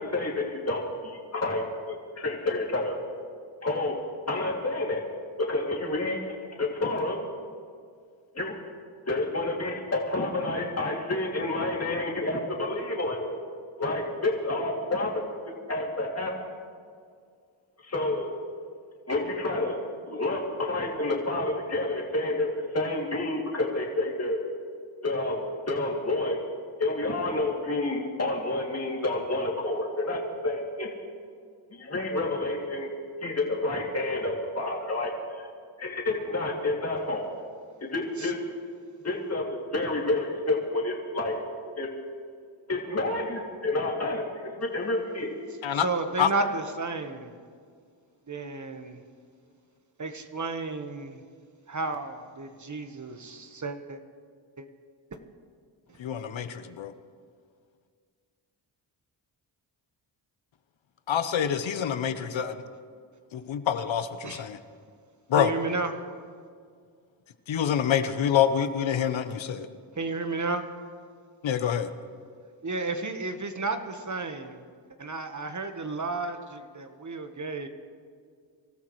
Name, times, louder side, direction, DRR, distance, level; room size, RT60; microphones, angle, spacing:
voice 1, 0.0-3.0 3.6-3.9 4.3-5.0 5.4-6.2 6.6-7.2 8.3-8.5 9.1-13.4 13.8-15.1 15.7-16.3 17.8-18.3 19.1-19.7 20.1-24.4 25.0-26.4 26.8-30.9 31.7-32.9 33.2-35.5 35.8-37.3 37.8-38.4 39.0-41.3 41.8-41.9 42.7-45.3, left 2 dB, 30° left, -2 dB, 2.7 m, -29 dB
voice 2, 45.7-47.3 48.3-49.0 50.0-51.2 51.7-54.0 54.6-54.7 55.9-56.0 62.4-62.5 64.2-64.4 65.4-65.9 69.9-70.7 72.6-74.6 75.0-77.7, right 3 dB, 35° right, 7 dB, 1.4 m, -32 dB
voice 3, 56.0-56.9 61.1-62.6 63.3-64.6 65.3-65.5 67.5-69.7 71.4-71.9, left 8 dB, 65° left, 11 dB, 1.0 m, -26 dB
25.0 x 13.0 x 3.2 m, 2.1 s
cardioid pair, 55°, 49 cm